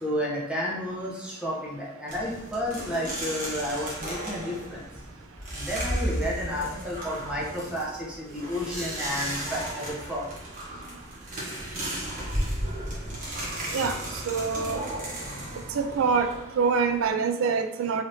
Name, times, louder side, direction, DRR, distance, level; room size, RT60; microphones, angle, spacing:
voice 1, 0.0-4.8 5.5-10.3, equal, 5° right, -5 dB, 0.7 m, -31 dB
sound 1, 2.1-17.1, right 1 dB, 40° right, 1.0 m, -34 dB
voice 2, 14.2-14.8 15.7-16.3 16.6-18.0, right 5 dB, 75° right, 7 dB, 0.4 m, -25 dB
3.3 x 2.6 x 2.7 m, 0.85 s
head